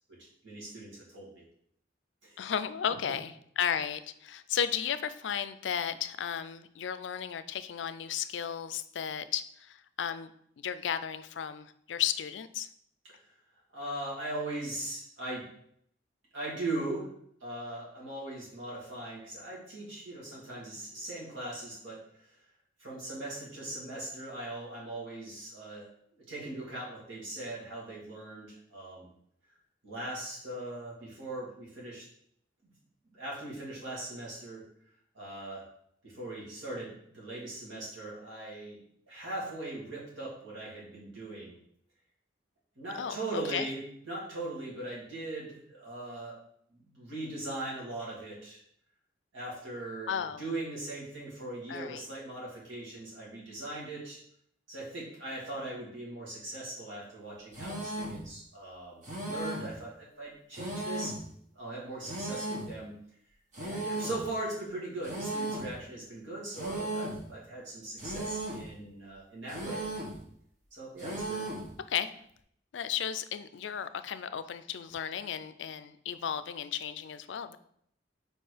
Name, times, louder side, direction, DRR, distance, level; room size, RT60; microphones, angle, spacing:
voice 1, 0.2-1.3 2.2-2.4 13.7-15.4 16.3-17.1 17.4-22.3 22.8-25.9 26.3-29.1 29.8-32.0 32.6-32.7 33.1-34.6 35.1-35.6 36.0-38.8 39.1-41.6 42.8-46.4 46.7-48.6 49.3-54.2 54.7-61.1 61.5-62.9 63.6-69.9 70.7-71.4, right 2 dB, 90° right, -5 dB, 2.8 m, -40 dB
voice 2, 2.4-10.3 10.6-12.7 43.0-43.7 50.1-50.4 51.7-52.0 71.9-72.1 72.7-77.6, left 8 dB, 70° left, 13 dB, 0.4 m, -34 dB
sound 1, 57.5-58.2 59.0-59.8 60.5-61.3 62.0-62.7 63.5-64.2 65.0-65.7 66.5-67.2 68.0-68.7 69.5-70.2 71.0-71.7, right 1 dB, 40° right, 1.4 m, -36 dB
4.8 x 4.4 x 5.0 m, 0.68 s
head